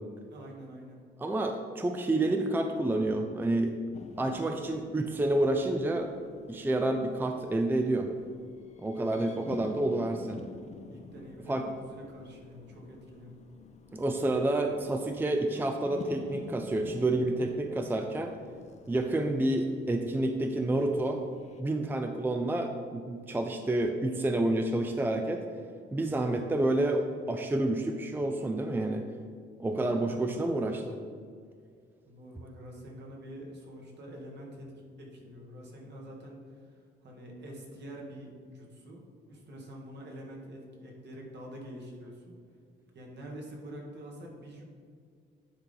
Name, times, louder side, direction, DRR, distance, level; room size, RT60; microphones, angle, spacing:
voice 1, 0.3-1.0 9.0-9.2 10.9-13.4 29.7-30.7 32.1-39.0 39.3-42.4 42.9-44.6, equal, 60° right, -1 dB, 1.8 m, -46 dB
voice 2, 1.2-3.8 4.2-6.1 6.5-8.1 8.8-10.4 11.5-11.6 13.9-18.3 18.9-21.2 21.6-25.4 25.9-29.0 29.6-31.0, right 2 dB, 10° right, 5 dB, 0.4 m, -29 dB
sound 1, 3.9-21.6, left 3 dB, 35° left, 0.6 m, -49 dB
9.9 x 4.0 x 3.9 m, 2.1 s
cardioid pair, 90°, 20 cm